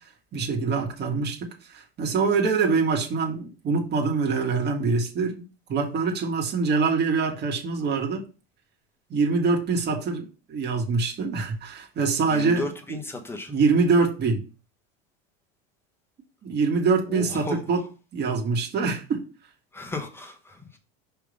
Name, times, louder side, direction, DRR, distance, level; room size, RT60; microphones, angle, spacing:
voice 1, 0.3-5.4 5.7-8.2 9.1-12.7 13.5-14.4 16.4-17.8 18.1-19.2, right 4 dB, 35° right, 1.7 m, -24 dB
voice 2, 12.3-13.5 17.1-17.6 19.7-20.8, left 2 dB, 10° left, 1.2 m, -34 dB
5.6 x 3.5 x 5.2 m
supercardioid pair, 125°, 31 cm